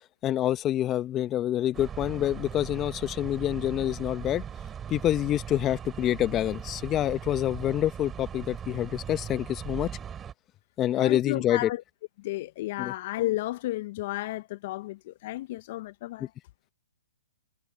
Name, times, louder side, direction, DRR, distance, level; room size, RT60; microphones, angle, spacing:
voice 1, 0.2-4.4 4.9-9.9 10.8-11.7 12.8-12.9 16.2-16.3, left 12 dB, 20° left, 1.3 m, -27 dB
sound 1, 1.7-10.3, right 8 dB, 15° right, 3.6 m, -39 dB
voice 2, 11.0-11.8 12.2-16.3, left 16 dB, 45° left, 0.9 m, -32 dB
hypercardioid pair, 135°, 0 cm